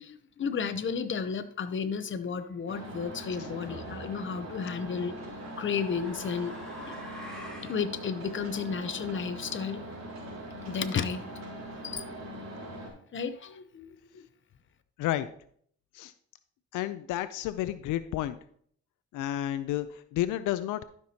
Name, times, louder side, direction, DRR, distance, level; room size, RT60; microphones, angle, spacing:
voice 1, 0.0-5.1 5.6-6.5 6.9-7.0 7.6-9.8 10.7-11.2 11.8-12.0 13.1-14.2, left 6 dB, 40° left, 10 dB, 0.8 m, -33 dB
sound 1, 2.7-12.9, right 1 dB, 60° right, 3.2 m, -41 dB
sound 2, 3.7-4.1 5.1-7.8, equal, 5° left, 3.2 m, -46 dB
voice 2, 16.7-18.4 19.1-20.8, left 13 dB, 85° left, 12 dB, 0.5 m, -31 dB
12.5 x 6.0 x 2.8 m, 0.63 s
cardioid pair, 90°, 30 cm